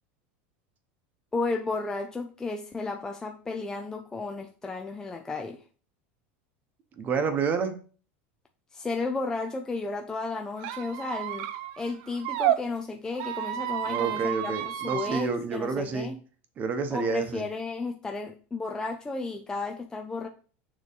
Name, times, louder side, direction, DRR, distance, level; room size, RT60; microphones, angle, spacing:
voice 1, 1.3-5.6 8.7-11.5 11.8-16.2 16.9-20.3, left 3 dB, 10° left, 0.4 m, -33 dB
voice 2, 7.0-7.7 13.9-16.1 16.6-17.4, right 5 dB, 30° right, 0.9 m, -29 dB
Squeak, 10.6-12.6 13.1-15.2, right 13 dB, 60° right, 0.6 m, -31 dB
6.6 x 3.0 x 5.1 m
supercardioid pair, 145°, 6 cm